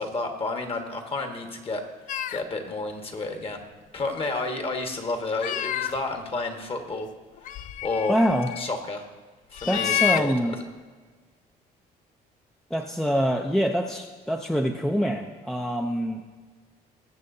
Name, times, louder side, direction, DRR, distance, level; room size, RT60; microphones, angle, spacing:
voice 1, 0.0-1.8 2.3-3.6 3.9-7.1 7.5-8.2 8.6-9.1 9.5-10.6, left 3 dB, 35° left, 4 dB, 1.5 m, -31 dB
sound 1, 2.1-2.4 3.5-3.6 4.0-4.1 5.3-6.2 7.4-8.7 9.5-10.2, left 12 dB, 50° left, 0.4 m, -29 dB
voice 2, 8.1-8.5 9.7-10.6 12.7-16.3, equal, ahead, 3 dB, 0.6 m, -25 dB
20.5 x 7.0 x 2.7 m, 1.4 s
cardioid pair, 110°, 17 cm